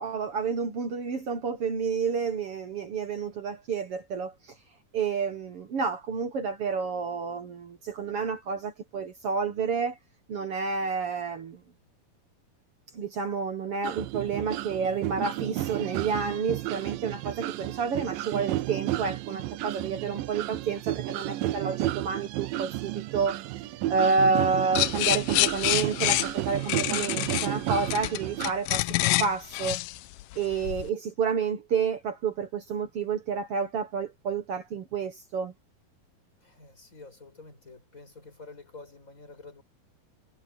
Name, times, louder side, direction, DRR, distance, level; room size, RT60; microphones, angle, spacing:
voice 1, 0.0-4.5 4.9-10.0 10.3-11.6 12.9-23.4 23.9-29.8 30.3-35.5, right 5 dB, 60° right, 1.6 m, -30 dB
sound 1, 13.8-28.5, right 15 dB, 80° right, 2.2 m, -32 dB
sound 2, 24.7-30.9, left 18 dB, 80° left, 2.0 m, -27 dB
voice 2, 36.4-39.6, left 3 dB, 20° left, 7.3 m, -48 dB
omnidirectional pair, 4.4 m